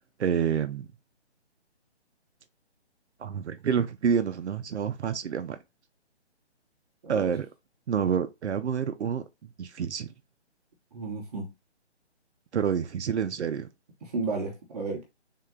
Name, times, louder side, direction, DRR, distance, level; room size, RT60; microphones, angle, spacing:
voice 1, 0.2-0.9 3.2-5.6 7.1-7.5 7.9-9.2 9.6-10.1 12.5-13.7, right 7 dB, 75° right, 0.6 m, -28 dB
voice 2, 10.9-11.5 14.0-15.0, right 3 dB, 35° right, 0.9 m, -33 dB
3.8 x 2.2 x 3.5 m
figure-of-eight pair, 150°, 34 cm